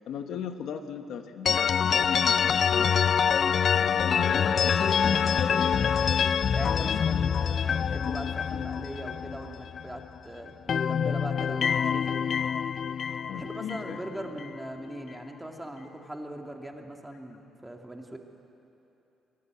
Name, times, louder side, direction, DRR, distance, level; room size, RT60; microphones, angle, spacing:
voice 1, 0.0-3.3 3.8-4.7 5.2-6.0 6.6-7.2 13.3-14.0, left 8 dB, 80° left, 7 dB, 1.2 m, -39 dB
sound 1, 1.5-10.2 10.5-14.6, left 7 dB, 55° left, 0.4 m, -26 dB
voice 2, 6.5-12.2 13.3-18.2, right 1 dB, 10° right, 2 dB, 2.3 m, -40 dB
24.0 x 13.0 x 9.5 m, 3.0 s
cardioid pair, 90°, 0 cm